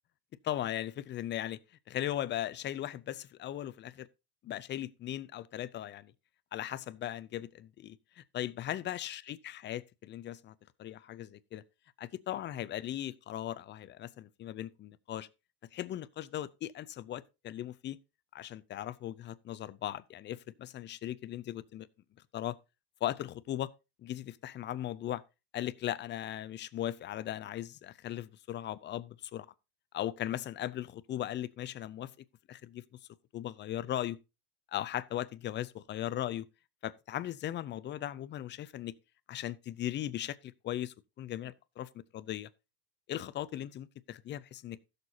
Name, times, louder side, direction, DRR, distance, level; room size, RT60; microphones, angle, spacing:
voice 1, 0.4-1.6 1.9-4.1 4.4-6.1 6.5-11.6 12.0-15.3 15.7-18.0 18.3-21.9 22.3-22.6 23.0-23.7 24.0-25.2 25.5-29.5 29.9-32.1 32.5-32.8 33.3-34.2 34.7-36.5 36.8-38.9 39.3-42.5 43.1-44.8, left 12 dB, 25° left, 0.4 m, -38 dB
15.5 x 6.7 x 2.7 m
supercardioid pair, 115°, 48 cm